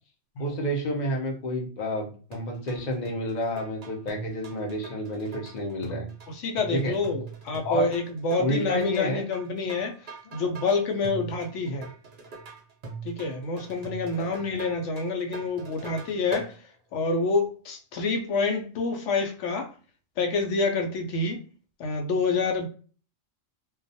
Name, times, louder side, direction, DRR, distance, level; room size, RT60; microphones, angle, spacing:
voice 1, 0.4-6.0 6.7-7.0 7.6-7.9 8.4-9.2 10.2-10.5 14.2-14.6, equal, 45° left, 0.6 m, -30 dB
sound 1, 2.3-16.5, right 4 dB, 50° right, 0.6 m, -41 dB
voice 2, 6.3-11.9 13.0-16.5 16.9-19.7 20.2-21.4 21.8-22.7, left 3 dB, 70° left, 0.8 m, -27 dB
2.3 x 2.3 x 2.6 m
omnidirectional pair, 1.4 m